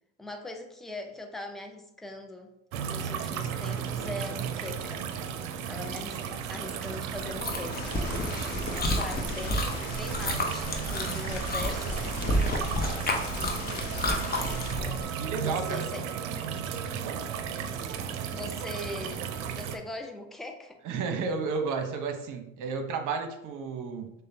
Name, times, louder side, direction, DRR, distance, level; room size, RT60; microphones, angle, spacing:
voice 1, 0.2-2.5 2.9-5.0 5.7-6.2 6.5-7.9 8.7-12.2 13.3-14.1 15.4-16.0 18.3-19.2 19.5-20.8, left 2 dB, ahead, 4 dB, 0.5 m, -41 dB
sound 1, 2.7-19.8, right 7 dB, 75° right, 0.5 m, -34 dB
Chewing mastication, 7.2-15.0, left 1 dB, 25° left, 0.9 m, -31 dB
sound 2, 7.7-14.7, left 4 dB, 55° left, 0.9 m, -42 dB
voice 2, 15.2-15.9 20.8-24.1, right 5 dB, 50° right, 6 dB, 0.9 m, -32 dB
6.3 x 2.2 x 2.7 m, 0.83 s
hypercardioid pair, 70°, 39 cm